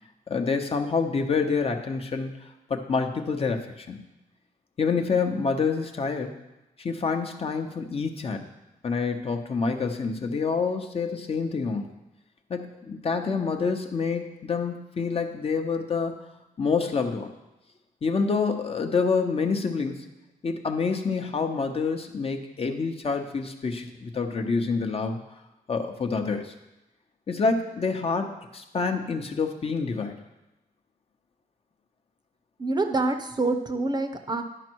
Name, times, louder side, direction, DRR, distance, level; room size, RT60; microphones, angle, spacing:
voice 1, 0.3-2.3 2.7-4.0 4.8-6.3 6.8-8.5 8.8-11.9 12.5-16.2 16.6-17.3 18.0-20.1 20.4-25.2 25.7-26.5 27.3-30.2, left 4 dB, 40° left, 5 dB, 0.8 m, -27 dB
voice 2, 32.6-34.4, right 2 dB, 25° right, 6 dB, 0.7 m, -26 dB
11.0 x 5.3 x 4.6 m, 0.96 s
cardioid pair, 105°, 16 cm